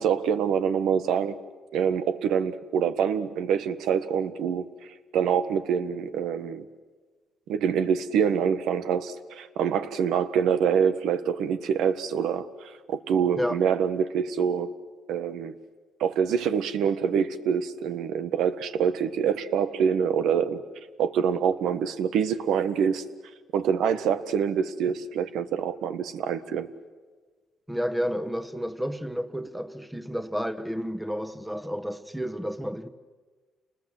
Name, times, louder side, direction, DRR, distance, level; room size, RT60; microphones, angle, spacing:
voice 1, 0.0-1.4 1.7-4.7 5.1-6.6 7.5-14.7 15.1-15.5 16.0-20.6 21.0-23.0 23.5-26.7, right 7 dB, 85° right, 1.3 m, -25 dB
voice 2, 27.7-32.9, equal, 5° right, 1.3 m, -31 dB
29.0 x 20.5 x 7.8 m
cardioid pair, 90°, 0 cm